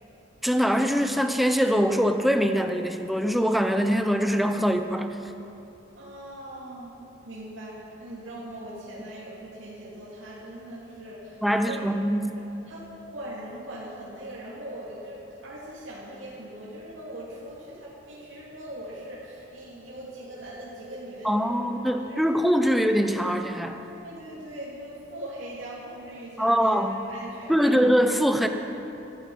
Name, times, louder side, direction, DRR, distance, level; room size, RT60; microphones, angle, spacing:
voice 1, 0.4-5.2 11.4-12.3 21.2-23.8 26.4-27.0 27.5-28.5, equal, ahead, 6 dB, 0.7 m, -23 dB
voice 2, 5.9-6.9 7.2-11.4 11.6-11.8 12.7-22.2 23.8-26.8 27.1-27.8, right 1 dB, 80° right, -7 dB, 2.6 m, -40 dB
15.0 x 13.5 x 5.5 m, 2.9 s
head